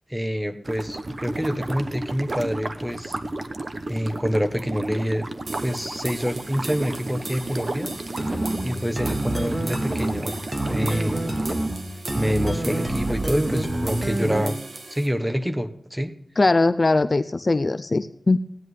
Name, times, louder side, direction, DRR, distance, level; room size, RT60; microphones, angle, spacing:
voice 1, 0.1-3.2 3.9-5.3 5.6-7.9 8.6-11.3 12.1-14.6 14.9-16.1, equal, 5° right, 7 dB, 1.2 m, -27 dB
sound 1, 0.6-11.5, right 2 dB, 40° right, 1.0 m, -33 dB
sound 2, 5.5-15.1, right 2 dB, 60° right, 1.7 m, -38 dB
sound 3, 8.2-14.7, right 1 dB, 25° right, 1.9 m, -27 dB
voice 2, 16.4-18.4, left 3 dB, 40° left, 11 dB, 0.5 m, -20 dB
16.0 x 10.5 x 3.3 m, 0.68 s
wide cardioid pair, 110°, 0 cm